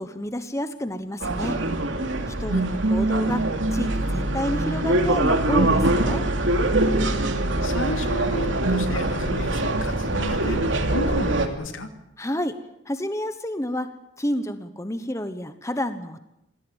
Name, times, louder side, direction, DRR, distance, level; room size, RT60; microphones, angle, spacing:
voice 1, 0.0-1.6 2.3-3.4 3.7-6.2 12.2-12.6 12.8-13.9 14.2-16.2, left 1 dB, 15° left, 10 dB, 1.0 m, -29 dB
sound 1, 1.2-11.5, right 2 dB, 70° right, 2.9 m, -23 dB
voice 2, 2.3-2.7 7.6-11.9, left 1 dB, 80° left, 7 dB, 2.7 m, -33 dB
26.5 x 17.5 x 8.9 m, 0.85 s
head